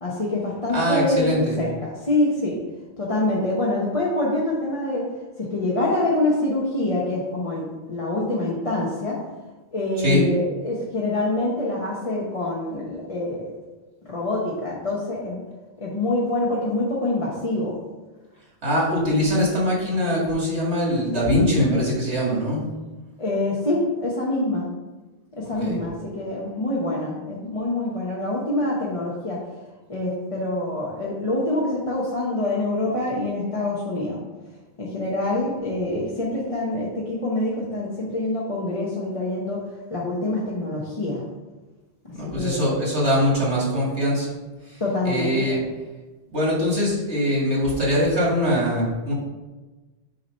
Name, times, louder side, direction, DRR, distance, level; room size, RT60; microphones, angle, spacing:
voice 1, 0.0-1.3 1.6-2.6 3.0-5.1 5.4-9.2 9.7-13.5 14.1-15.4 15.8-17.8 23.2-24.7 25.3-29.4 29.9-34.2 34.8-39.6 39.9-41.2 42.2-42.7 44.8-45.6, left 2 dB, 35° left, -5 dB, 0.9 m, -25 dB
voice 2, 0.7-1.6 9.9-10.3 18.6-22.6 25.6-25.8 42.1-44.3 44.7-45.6 46.3-49.1, equal, 90° right, -5 dB, 2.3 m, -22 dB
7.7 x 2.9 x 5.3 m, 1.2 s
omnidirectional pair, 1.1 m